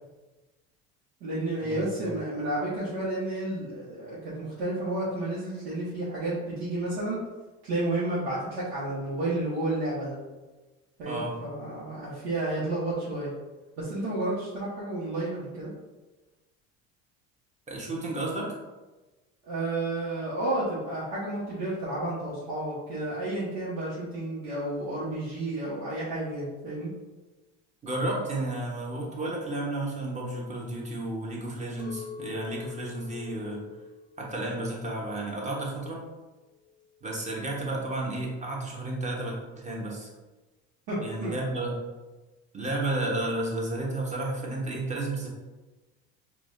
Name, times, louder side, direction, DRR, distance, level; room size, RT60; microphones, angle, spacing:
voice 1, 1.2-7.2 7.6-10.2 11.0-13.3 13.8-15.7 19.4-26.9 40.9-41.3, right 2 dB, 80° right, -9 dB, 1.1 m, -31 dB
voice 2, 17.7-18.6 27.8-33.6 34.2-36.0 37.0-40.1 41.0-41.8 42.5-45.3, right 2 dB, 20° right, -2 dB, 1.1 m, -32 dB
Chink clink, 31.8-37.0, left 6 dB, 75° left, 0.5 m, -45 dB
4.6 x 2.4 x 2.6 m, 1.2 s
hypercardioid pair, 80°, 32 cm